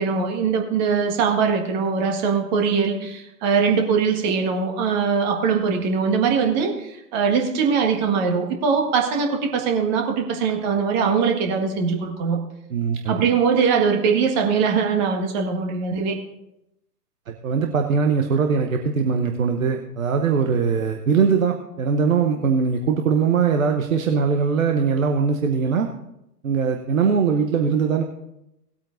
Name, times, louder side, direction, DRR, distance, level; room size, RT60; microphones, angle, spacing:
voice 1, 0.0-12.4 13.1-16.2, right 5 dB, 25° right, 3 dB, 1.6 m, -21 dB
voice 2, 12.7-13.2 17.3-25.9 26.4-28.0, right 6 dB, 55° right, 4 dB, 1.1 m, -21 dB
19.0 x 8.6 x 2.6 m, 0.87 s
figure-of-eight pair, 120°, 49 cm